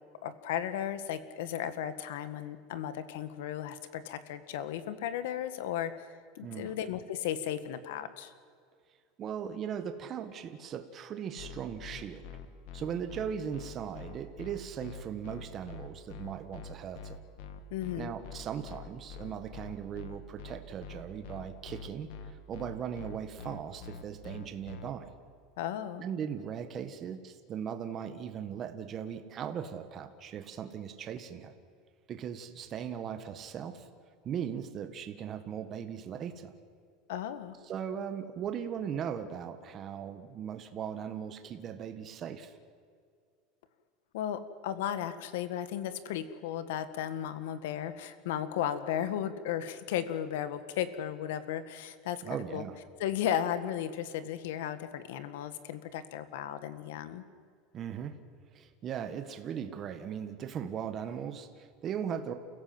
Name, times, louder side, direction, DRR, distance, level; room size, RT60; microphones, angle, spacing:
voice 1, 0.2-8.3 17.7-18.1 25.6-26.0 37.1-37.6 44.1-52.2 52.5-52.6 53.0-57.2, left 10 dB, 85° left, 12 dB, 1.8 m, -35 dB
voice 2, 6.4-6.7 9.2-12.3 12.7-17.2 17.9-22.1 22.5-25.1 26.0-31.5 32.1-33.9 34.2-36.5 37.6-42.5 52.2-52.8 57.7-58.2 58.5-62.3, right 8 dB, 30° right, 7 dB, 1.5 m, -38 dB
sound 1, 11.4-24.9, left 6 dB, 70° left, 2.0 m, -45 dB
29.0 x 16.0 x 7.9 m, 2.1 s
supercardioid pair, 160°, 0 cm